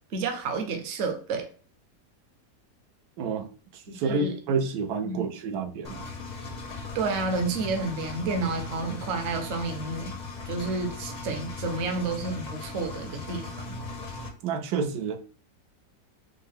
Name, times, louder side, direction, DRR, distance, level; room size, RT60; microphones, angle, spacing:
voice 1, 0.1-1.5 3.9-4.3 5.0-5.3 6.9-10.1 10.5-13.7, right 3 dB, 55° right, 1.0 m, -30 dB
voice 2, 3.7-6.0 14.4-15.2, right 4 dB, 85° right, 1.2 m, -29 dB
Engine, 5.8-14.3, left 3 dB, 55° left, 0.5 m, -38 dB
5.3 x 2.2 x 3.5 m
omnidirectional pair, 1.7 m